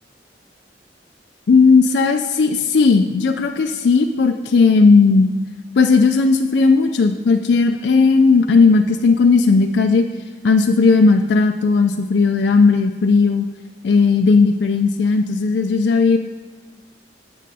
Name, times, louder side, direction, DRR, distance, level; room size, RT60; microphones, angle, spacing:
voice 1, 1.5-5.3 5.8-10.1 10.4-13.5 13.8-16.2, left 4 dB, 70° left, 5 dB, 0.4 m, -15 dB
15.0 x 6.3 x 2.8 m, 1.3 s
head